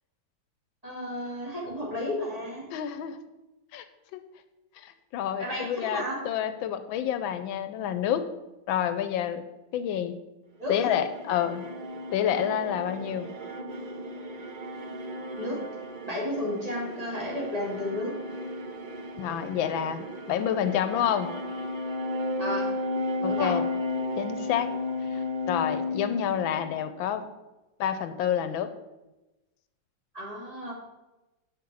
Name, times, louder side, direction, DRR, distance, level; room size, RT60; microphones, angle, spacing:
voice 1, 0.8-2.7 5.4-6.2 10.6-11.0 15.4-15.6 16.0-18.2 22.4-22.7 23.3-23.5 30.1-30.7, left 1 dB, 20° right, -5 dB, 2.7 m, -33 dB
voice 2, 2.7-3.2 3.7-3.8 4.1-4.2 4.8-8.3 8.7-9.4 9.7-10.1 10.7-11.7 12.1-13.3 19.2-21.3 23.2-23.6 24.2-24.7 25.1-25.2 25.5-27.2 27.8-28.7, left 9 dB, 85° left, 10 dB, 1.4 m, -28 dB
sound 1, 10.6-27.0, left 1 dB, 60° right, 0.5 m, -34 dB
7.0 x 5.8 x 6.2 m, 1.0 s
omnidirectional pair, 2.1 m